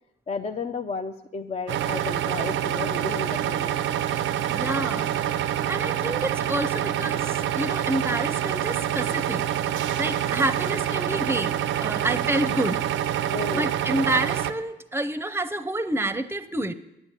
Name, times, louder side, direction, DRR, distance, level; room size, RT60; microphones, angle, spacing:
voice 1, 0.3-3.8 13.3-13.7, left 4 dB, 30° left, 7 dB, 0.6 m, -33 dB
sound 1, 1.7-14.5, right 10 dB, 75° right, 0.6 m, -26 dB
voice 2, 4.5-5.1 5.7-9.4 10.0-12.8 13.5-16.7, right 1 dB, 10° right, 12 dB, 0.7 m, -28 dB
9.7 x 7.0 x 8.2 m, 0.90 s
cardioid pair, 90°, 20 cm